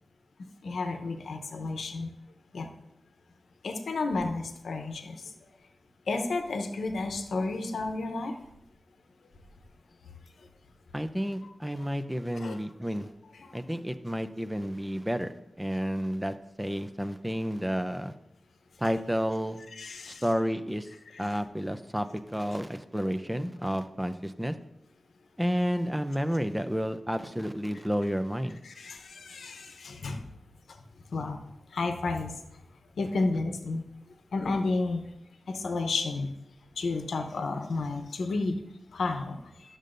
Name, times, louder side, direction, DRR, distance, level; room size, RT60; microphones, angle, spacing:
voice 1, 0.6-2.1 2.5-2.7 3.6-5.2 6.1-8.3 11.8-11.9 12.4-12.6 19.8-20.2 21.1-21.3 28.6-30.2 31.1-31.4 31.7-32.3 33.0-33.8 34.3-35.0 35.5-36.3 36.8-38.6 38.9-39.4, left 3 dB, 80° left, 5 dB, 0.8 m, -31 dB
voice 2, 10.9-13.1 13.5-15.3 15.6-18.1 18.8-19.6 20.1-20.9 21.2-24.5 25.4-28.6, equal, 5° right, 9 dB, 0.4 m, -31 dB
12.0 x 6.5 x 2.6 m, 0.84 s
wide cardioid pair, 125°, 0 cm